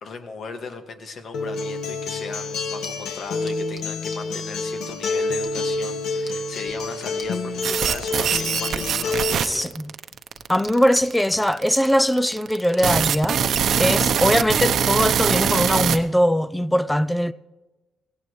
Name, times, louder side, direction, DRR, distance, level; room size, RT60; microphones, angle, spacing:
voice 1, 0.0-9.7, left 4 dB, 55° left, 1.9 m, -37 dB
Acoustic guitar, 1.3-9.3, left 3 dB, 70° left, 1.4 m, -28 dB
sound 1, 2.6-15.1, left 2 dB, 35° left, 2.6 m, -47 dB
sound 2, 7.6-16.0, right 7 dB, 60° right, 0.8 m, -22 dB
voice 2, 9.4-9.9 10.5-17.3, equal, 5° left, 0.5 m, -21 dB
17.0 x 16.0 x 3.2 m
cardioid pair, 90°, 0 cm